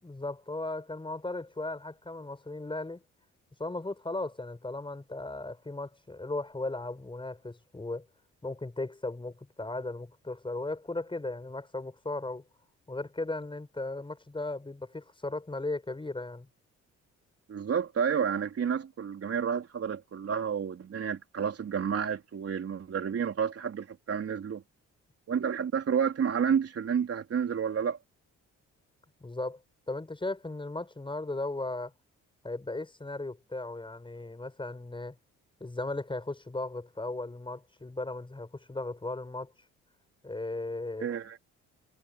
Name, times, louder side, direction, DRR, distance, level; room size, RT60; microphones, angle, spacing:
voice 1, 0.0-3.0 3.6-8.1 8.4-12.4 12.9-16.5 29.2-29.6 29.9-31.9 32.4-35.2 35.6-39.5 40.2-41.1, left 2 dB, 15° left, 5.7 m, -36 dB
voice 2, 17.5-24.6 25.3-28.0 41.0-41.4, right 7 dB, 50° right, 3.7 m, -30 dB
cardioid pair, 90°, 30 cm